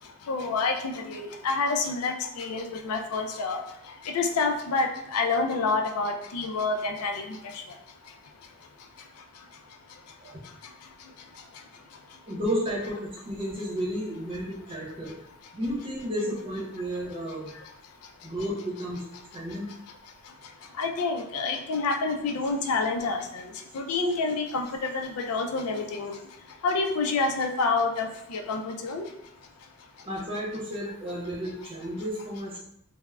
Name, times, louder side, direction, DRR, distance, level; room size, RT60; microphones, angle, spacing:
voice 1, 0.3-3.6 4.0-7.6 20.8-26.1 26.6-29.1, left 3 dB, 85° left, 4 dB, 0.4 m, -28 dB
voice 2, 12.3-15.1 15.5-17.5 18.2-19.0 19.3-19.7 30.0-32.6, equal, 25° right, -5 dB, 0.8 m, -32 dB
3.4 x 2.0 x 2.2 m, 0.77 s
head